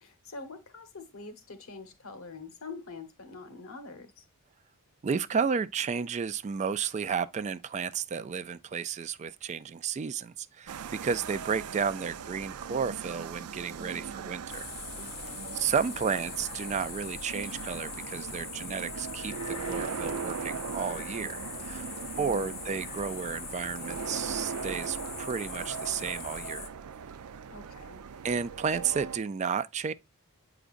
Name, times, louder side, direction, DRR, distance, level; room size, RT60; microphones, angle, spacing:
voice 1, 0.0-4.2 13.8-14.4 14.9-15.5 22.2-22.6 27.5-28.0, left 3 dB, 70° left, 1.1 m, -45 dB
voice 2, 5.0-14.7 15.5-21.9 22.2-26.7 28.2-29.9, right 6 dB, 30° right, 0.3 m, -32 dB
sound 1, 10.7-29.2, right 6 dB, 90° right, 0.5 m, -40 dB
sound 2, 14.5-26.7, left 5 dB, 30° left, 0.7 m, -42 dB
8.1 x 4.9 x 2.5 m
head